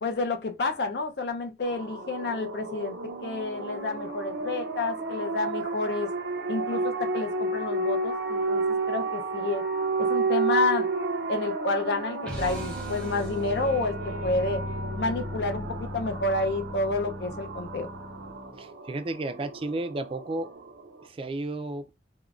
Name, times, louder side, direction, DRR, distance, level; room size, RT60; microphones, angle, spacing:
voice 1, 0.0-6.1 6.5-9.6 10.0-10.9 11.3-14.0 14.2-14.6 15.0-17.9, left 3 dB, 65° left, 0.5 m, -29 dB
sound 1, 1.6-21.0, right 3 dB, 90° right, 0.5 m, -32 dB
sound 2, 12.2-18.7, left 1 dB, 5° left, 0.7 m, -37 dB
voice 2, 18.6-20.5 21.0-21.8, right 2 dB, 30° right, 0.3 m, -32 dB
3.6 x 2.1 x 2.3 m
head